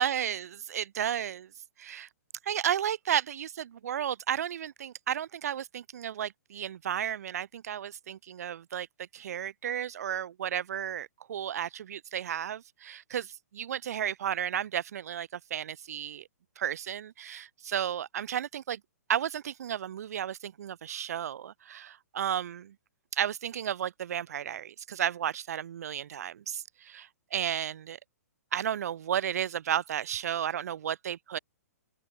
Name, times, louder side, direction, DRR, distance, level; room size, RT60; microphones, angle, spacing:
voice 1, 0.0-1.5 1.8-2.1 2.4-16.3 16.6-18.8 19.1-22.7 23.1-28.0 28.5-31.4, right 9 dB, 70° right, 0.4 m, -33 dB
open air
hypercardioid pair, 135°, 9 cm